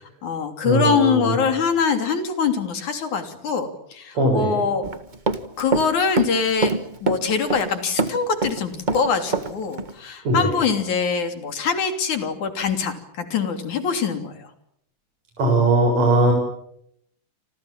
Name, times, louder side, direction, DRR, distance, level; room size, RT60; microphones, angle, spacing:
voice 1, 0.0-4.8 5.6-6.7 7.0-14.5, left 5 dB, 70° left, 7 dB, 4.5 m, -23 dB
voice 2, 0.6-1.3 4.1-4.6 10.2-10.6 15.4-16.3, right 2 dB, 60° right, 1 dB, 8.4 m, -19 dB
Run, 4.8-5.9 6.2-7.7 8.0-9.5 9.8-9.9, right 3 dB, 30° right, 0.8 m, -24 dB
29.5 x 25.5 x 7.5 m, 0.72 s
omnidirectional pair, 3.5 m